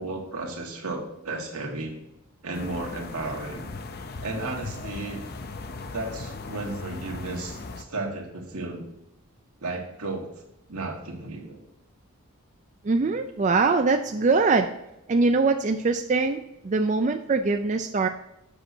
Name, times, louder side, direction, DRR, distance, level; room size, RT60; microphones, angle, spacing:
voice 1, 0.0-1.9 2.4-3.7 4.2-5.2 5.9-8.8 9.6-10.3 10.7-11.6, right 2 dB, 80° right, 0 dB, 1.9 m, -33 dB
sound 1, 2.5-7.8, left 3 dB, 45° left, 0.6 m, -38 dB
voice 2, 12.8-14.7 15.1-18.1, right 3 dB, 35° right, 6 dB, 0.4 m, -23 dB
7.8 x 6.1 x 4.4 m, 0.86 s
head